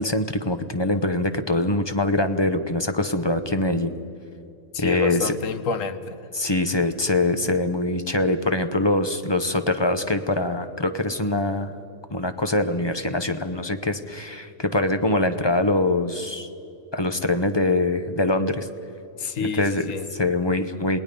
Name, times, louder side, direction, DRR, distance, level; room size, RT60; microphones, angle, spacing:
voice 1, 0.0-3.9 4.8-5.4 6.3-11.8 12.1-16.5 16.9-18.7 19.6-21.0, left 2 dB, 25° left, 9 dB, 0.7 m, -23 dB
voice 2, 4.7-6.3 19.2-20.1, left 5 dB, 75° left, 11 dB, 1.4 m, -29 dB
28.5 x 19.0 x 5.3 m, 2.8 s
omnidirectional pair, 1.4 m